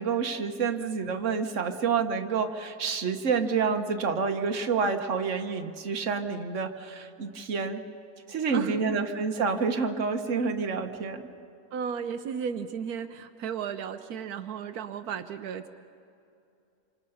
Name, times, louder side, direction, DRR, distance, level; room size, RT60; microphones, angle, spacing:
voice 1, 0.0-7.8 8.3-11.2, right 5 dB, 55° right, 6 dB, 1.6 m, -28 dB
voice 2, 8.5-9.0 11.7-15.7, right 7 dB, 85° right, 8 dB, 1.3 m, -34 dB
27.0 x 26.5 x 5.7 m, 2.6 s
omnidirectional pair, 1.5 m